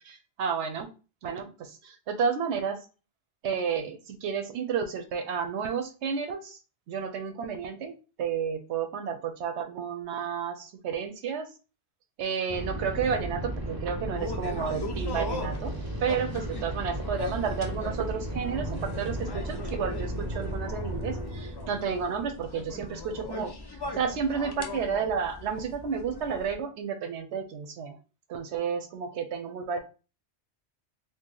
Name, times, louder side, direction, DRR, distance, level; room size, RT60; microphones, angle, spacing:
voice 1, 0.0-0.9 1.2-2.8 3.4-6.6 6.9-11.5 12.2-15.7 16.0-23.5 23.9-28.0 28.3-29.8, right 6 dB, 70° right, 6 dB, 0.8 m, -31 dB
sound 1, 12.5-23.2, right 1 dB, 25° right, 0.5 m, -35 dB
sound 2, 14.2-26.5, left 3 dB, 40° left, 0.3 m, -40 dB
2.8 x 2.7 x 3.7 m, 0.34 s
omnidirectional pair, 1.2 m